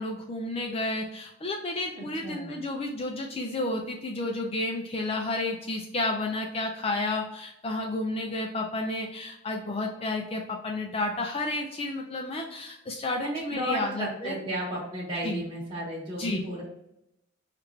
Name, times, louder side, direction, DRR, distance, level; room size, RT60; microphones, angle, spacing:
voice 1, 0.0-14.4 15.2-15.4 16.2-16.4, left 2 dB, 30° left, 2 dB, 0.4 m, -31 dB
voice 2, 1.9-2.5 13.2-16.6, right 1 dB, 25° right, -6 dB, 1.2 m, -33 dB
4.6 x 2.5 x 3.2 m, 0.83 s
head